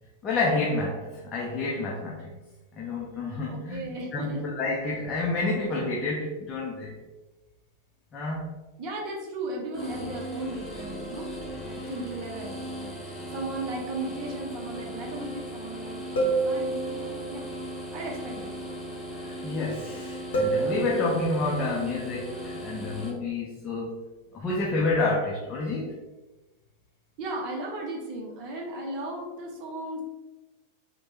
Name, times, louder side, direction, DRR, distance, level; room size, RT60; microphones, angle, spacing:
voice 1, 0.2-2.3 2.8-7.0 8.1-8.5 19.2-23.9 24.3-26.0, left 2 dB, 25° left, -4 dB, 0.5 m, -29 dB
voice 2, 3.5-4.4 8.8-11.3 11.6-17.5 17.9-18.6 27.2-30.0, right 2 dB, 40° right, -1 dB, 0.7 m, -36 dB
sound 1, 9.7-23.1, equal, 10° left, 0.9 m, -38 dB
sound 2, 13.7-13.8 16.2-17.3 20.3-21.4, right 3 dB, 60° left, 0.7 m, -28 dB
3.1 x 2.1 x 3.0 m, 1.1 s
figure-of-eight pair, 90°, 0 cm